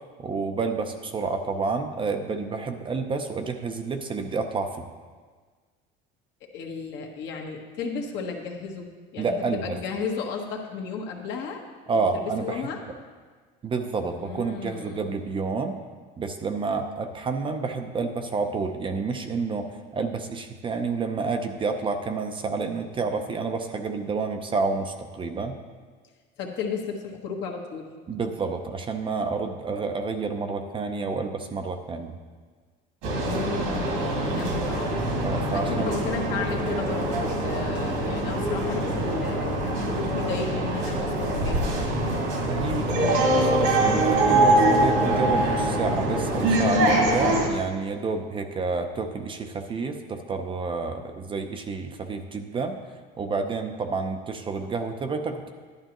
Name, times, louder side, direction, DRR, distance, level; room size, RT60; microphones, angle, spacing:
voice 1, 0.2-4.8 9.2-9.8 11.9-12.7 13.6-15.8 16.2-25.6 28.1-32.2 35.2-35.9 42.5-52.8 53.2-55.5, right 4 dB, 25° right, 6 dB, 0.6 m, -29 dB
voice 2, 6.5-9.3 9.6-11.6 11.9-12.8 14.1-15.1 26.4-27.9 33.1-35.0 35.5-41.6, left 5 dB, 60° left, 1 dB, 1.5 m, -34 dB
sound 1, 33.0-47.5, right 1 dB, 80° right, 2.0 m, -24 dB
11.5 x 10.5 x 3.0 m, 1.5 s
cardioid pair, 125°, 21 cm